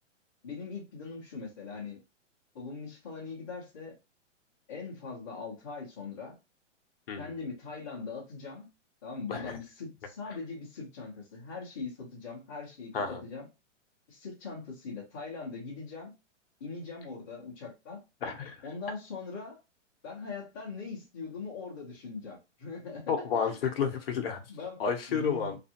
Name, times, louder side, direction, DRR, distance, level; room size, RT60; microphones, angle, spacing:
voice 1, 0.4-2.0 2.5-3.9 4.7-6.3 7.2-8.7 9.0-13.5 14.1-16.1 16.6-18.0 18.6-19.6 20.0-23.6 24.5-24.8 25.1-25.6, left 4 dB, 15° left, 0.5 m, -41 dB
voice 2, 18.2-18.6 23.1-24.4 24.8-25.6, left 6 dB, 50° left, 0.7 m, -31 dB
2.5 x 2.4 x 2.7 m
hypercardioid pair, 170°, 37 cm